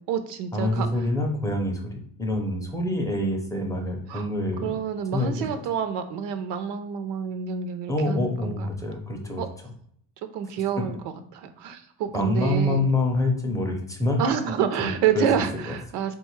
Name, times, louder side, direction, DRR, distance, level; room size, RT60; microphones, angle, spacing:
voice 1, 0.0-0.9 4.1-4.3 4.6-8.7 9.4-9.5 10.3-12.8 14.2-16.1, right 8 dB, 90° right, 9 dB, 0.5 m, -28 dB
voice 2, 0.5-4.7 5.1-5.5 7.9-9.4 12.1-14.2 14.8-14.9 15.1-15.8, left 1 dB, 10° left, 1 dB, 0.4 m, -26 dB
3.7 x 2.3 x 3.0 m, 0.66 s
cardioid pair, 130°, 41 cm